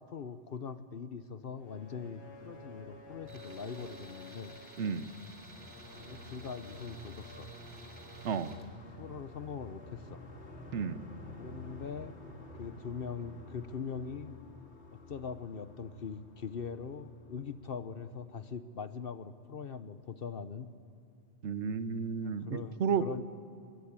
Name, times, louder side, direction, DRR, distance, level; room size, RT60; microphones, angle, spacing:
voice 1, 0.0-4.6 6.0-7.5 9.0-10.2 11.4-12.2 12.6-14.3 14.9-20.7 22.2-23.2, left 6 dB, 60° left, 12 dB, 1.1 m, -42 dB
sound 1, 1.5-18.4, left 2 dB, 80° left, 2.7 m, -50 dB
Tools, 3.3-8.7, right 2 dB, 60° right, 2.7 m, -54 dB
voice 2, 4.8-5.1 8.2-8.5 10.7-11.0 21.4-23.0, right 6 dB, 90° right, 13 dB, 1.2 m, -32 dB
26.5 x 21.5 x 8.9 m, 2.4 s
omnidirectional pair, 1.1 m